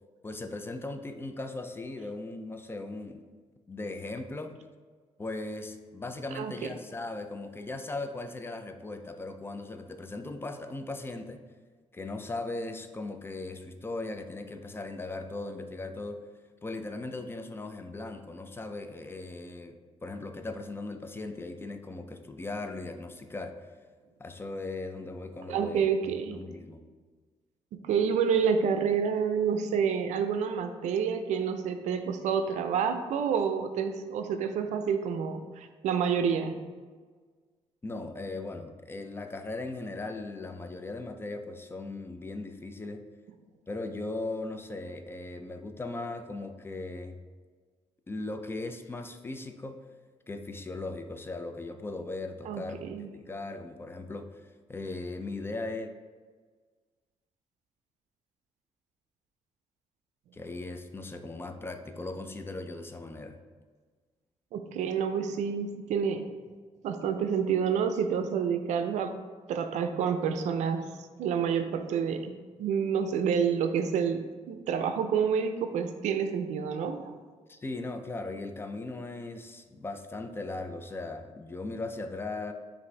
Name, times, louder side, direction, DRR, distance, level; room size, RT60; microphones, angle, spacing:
voice 1, 0.2-3.2 3.7-4.5 5.2-11.4 11.9-16.2 16.6-23.6 24.2-26.8 37.8-43.0 43.7-47.2 48.1-49.8 50.3-52.9 53.1-54.3 54.7-55.9 60.3-63.4 77.5-82.5, left 2 dB, 20° left, 7 dB, 0.3 m, -38 dB
voice 2, 6.3-6.7 25.5-26.4 27.8-36.6 52.5-53.1 64.5-66.2 66.8-69.1 69.5-70.9 71.2-77.1, right 7 dB, 85° right, 8 dB, 0.4 m, -28 dB
5.8 x 2.6 x 3.2 m, 1.5 s
cardioid pair, 100°, 12 cm